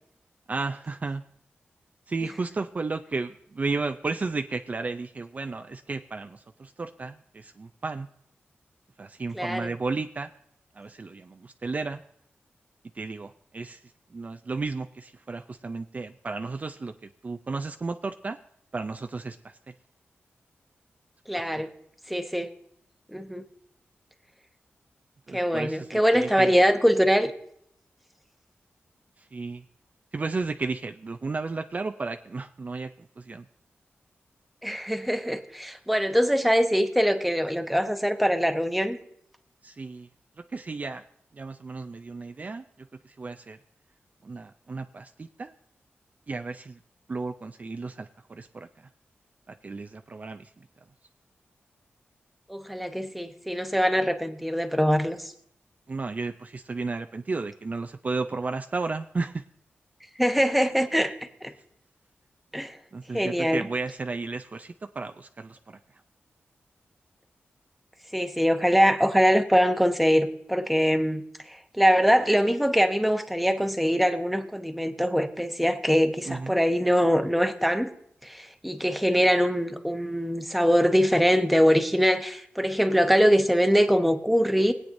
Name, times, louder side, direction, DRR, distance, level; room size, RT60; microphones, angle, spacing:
voice 1, 0.5-1.2 2.1-8.1 9.0-10.3 10.7-12.0 12.9-13.8 14.1-18.4 18.7-19.7 21.3-21.4 25.3-26.5 29.2-29.6 30.1-33.5 39.6-40.1 40.5-41.0 41.3-43.6 44.2-45.5 46.3-46.8 47.1-48.9 49.5-50.7 55.9-59.4 62.9-65.8 76.3-76.6, right 3 dB, 35° right, 7 dB, 0.4 m, -33 dB
voice 2, 9.3-9.7 21.3-21.7 22.1-22.5 23.1-23.4 25.3-27.3 34.6-39.0 52.5-55.3 60.2-61.1 61.4-61.5 62.5-62.8 63.1-63.7 68.1-77.9 78.2-84.7, equal, ahead, 6 dB, 1.0 m, -23 dB
23.0 x 8.7 x 2.7 m, 0.71 s
wide cardioid pair, 105°, 4 cm